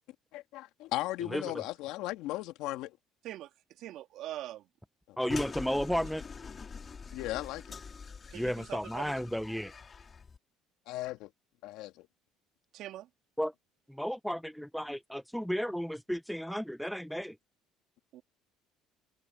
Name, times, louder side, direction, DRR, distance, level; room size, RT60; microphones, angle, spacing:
voice 1, 0.3-3.0 5.1-5.2 7.1-7.8 10.9-11.3 11.6-12.1, left 17 dB, 80° left, 2.4 m, -37 dB
voice 2, 1.3-1.6 5.2-6.2 8.3-9.7 13.4-13.5 13.9-17.4, equal, ahead, 0.6 m, -33 dB
voice 3, 3.8-4.7 8.3-9.3 12.7-13.1 18.1-18.2, right 14 dB, 70° right, 3.0 m, -43 dB
sound 1, 5.3-10.4, left 5 dB, 30° left, 3.2 m, -44 dB
open air
supercardioid pair, 95°, 0 cm